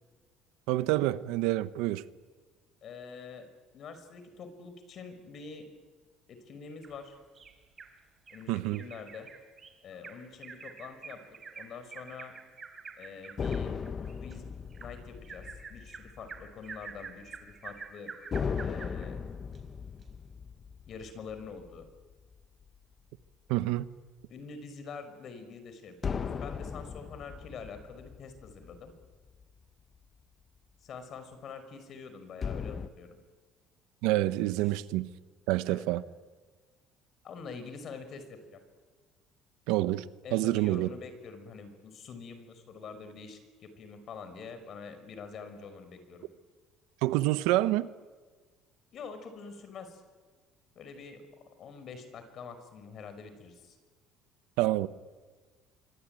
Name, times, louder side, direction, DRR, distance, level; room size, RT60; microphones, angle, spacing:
voice 1, 0.7-2.0 8.5-8.8 23.5-23.9 34.0-35.1 35.5-36.0 39.7-40.0 40.3-40.9 47.0-47.9 54.6-54.9, right 16 dB, 85° right, 1.1 m, -27 dB
voice 2, 2.8-3.5 3.7-5.7 6.3-7.2 8.3-9.3 9.8-11.2 11.6-12.3 13.0-13.7 14.2-14.5 14.8-18.1 18.6-19.2 20.9-21.9 24.3-28.9 30.8-33.2 34.6-34.7 35.7-35.8 37.2-38.6 40.2-46.3 48.9-50.0 50.8-51.2 51.6-53.8, left 5 dB, 50° left, 5.4 m, -45 dB
Bird vocalization bird call bird song, 6.8-7.9 8.3-8.4 8.7-19.1 19.5-19.6 20.0-20.1, right 5 dB, 30° right, 4.6 m, -47 dB
sound 1, 13.4-17.1 17.4-17.5 18.3-22.9 26.0-29.6 32.4-32.9, left 6 dB, 35° left, 1.2 m, -38 dB
26.0 x 24.5 x 9.2 m
cardioid pair, 110°, 0 cm